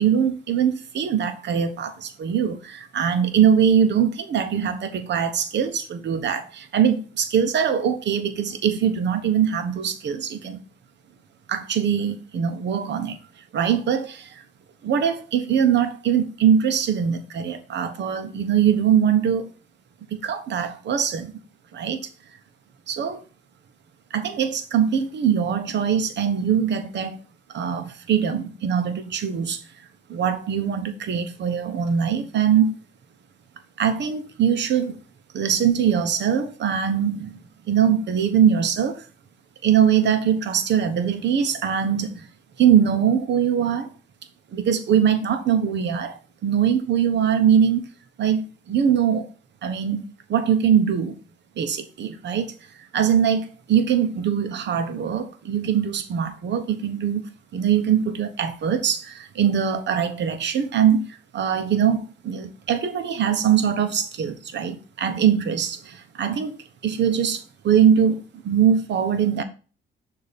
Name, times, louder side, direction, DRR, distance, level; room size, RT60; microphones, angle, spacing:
voice 1, 0.0-10.6 11.5-13.2 13.5-14.3 14.8-19.5 20.1-21.3 21.7-22.0 22.9-23.2 24.1-27.2 27.5-29.6 30.1-32.7 33.8-35.0 35.3-37.3 37.7-39.0 39.6-42.3 42.6-43.9 44.5-47.8 48.2-49.3 49.6-50.0 50.3-51.2 51.6-52.5 52.9-61.0 61.3-66.6 66.8-69.4, right 8 dB, 60° right, 1.0 m, -22 dB
6.6 x 2.9 x 5.0 m
cardioid pair, 90°, 20 cm